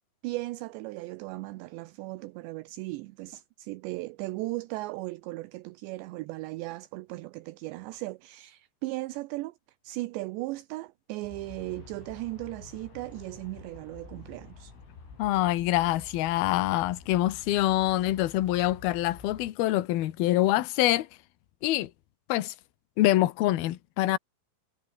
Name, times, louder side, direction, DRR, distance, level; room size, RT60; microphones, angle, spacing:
voice 1, 0.2-9.6 9.8-14.7, right 20 dB, 80° right, 2.7 m, -37 dB
Aircraft, 11.2-19.5, left 5 dB, 85° left, 10.5 m, -49 dB
voice 2, 15.2-21.1 21.6-21.9 22.3-22.5 23.0-24.2, left 15 dB, 65° left, 2.8 m, -25 dB
omnidirectional pair, 5.5 m